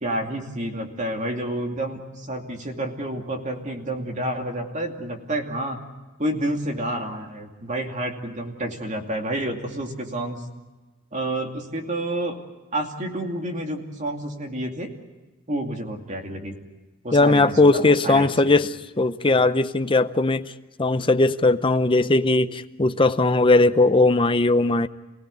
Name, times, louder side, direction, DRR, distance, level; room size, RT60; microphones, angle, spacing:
voice 1, 0.0-5.8 6.2-10.4 11.1-12.4 12.7-14.9 15.5-16.5 17.0-18.3, right 1 dB, 35° right, 2.6 m, -29 dB
voice 2, 17.1-20.5 20.8-24.9, left 2 dB, 25° left, 0.7 m, -19 dB
28.5 x 17.5 x 8.4 m
head